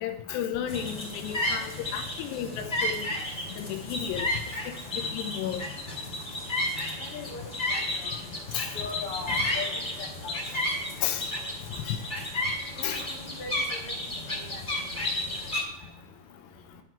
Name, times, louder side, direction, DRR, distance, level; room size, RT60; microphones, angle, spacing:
voice 1, 0.0-3.0 3.6-4.3 5.1-5.6 8.5-8.7 11.0-11.2 11.9-12.0 12.8-13.0, left 10 dB, 85° left, 6 dB, 2.9 m, -32 dB
sound 1, 0.7-15.6, left 1 dB, 20° left, 1.5 m, -32 dB
voice 2, 7.0-7.4 7.7-8.2 8.7-10.3 12.8-13.1 13.4-13.8 14.3-14.6, left 4 dB, 45° left, -1 dB, 2.3 m, -39 dB
11.5 x 4.6 x 6.0 m, 0.84 s
omnidirectional pair, 4.9 m